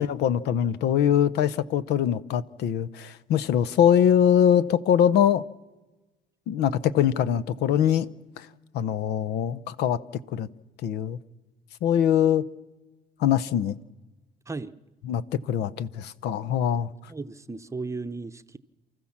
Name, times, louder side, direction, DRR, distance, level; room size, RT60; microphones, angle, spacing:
voice 1, 0.0-5.4 6.5-8.1 8.4-8.5 8.7-10.0 10.3-10.5 10.8-11.2 11.8-12.4 13.2-13.7 15.0-16.9, left 9 dB, 80° left, 0.8 m, -23 dB
voice 2, 17.1-18.6, right 3 dB, 15° right, 0.8 m, -35 dB
29.0 x 14.0 x 7.3 m
cardioid pair, 110°, 17 cm